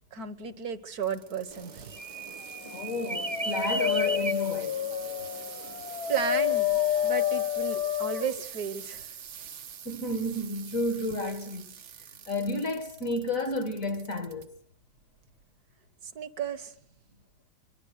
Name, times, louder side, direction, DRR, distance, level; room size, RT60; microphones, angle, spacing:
voice 1, 0.1-1.9 6.1-9.1 16.1-16.7, right 7 dB, 50° right, 1.6 m, -34 dB
sound 1, 1.0-14.5 15.0-15.4 16.1-16.2, right 8 dB, 70° right, 1.9 m, -46 dB
sound 2, 1.5-7.1, right 2 dB, 20° right, 1.0 m, -38 dB
voice 2, 2.7-4.8 9.8-11.7 12.3-14.5, left 1 dB, 45° left, 1.6 m, -31 dB
Dog, 2.8-8.4, left 10 dB, 80° left, 1.9 m, -29 dB
23.5 x 23.5 x 6.5 m
omnidirectional pair, 2.2 m